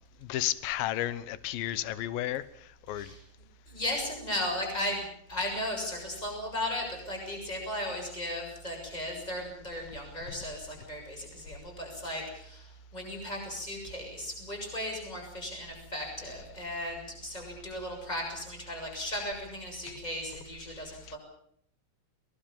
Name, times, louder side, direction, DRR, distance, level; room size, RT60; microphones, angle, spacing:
voice 1, 0.2-3.1, left 13 dB, 70° left, 16 dB, 2.7 m, -33 dB
voice 2, 2.9-3.2 3.7-21.2, left 1 dB, 10° left, 2 dB, 7.2 m, -36 dB
22.5 x 21.0 x 7.4 m, 0.66 s
omnidirectional pair, 4.5 m